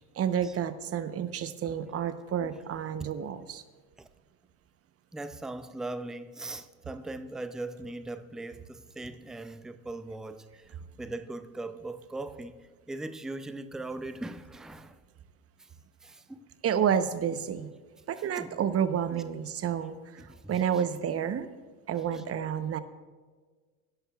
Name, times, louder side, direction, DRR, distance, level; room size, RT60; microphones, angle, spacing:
voice 1, 0.2-3.6 16.6-17.7 18.1-20.2 20.5-21.5 21.9-22.8, right 8 dB, 30° right, 12 dB, 0.9 m, -30 dB
voice 2, 5.1-15.0 15.6-15.7 16.0-16.5 18.2-18.6 19.1-19.2 20.2-20.8 22.1-22.2, right 2 dB, ahead, 11 dB, 0.4 m, -40 dB
22.0 x 11.0 x 2.4 m, 1.5 s
hypercardioid pair, 75°, 45 cm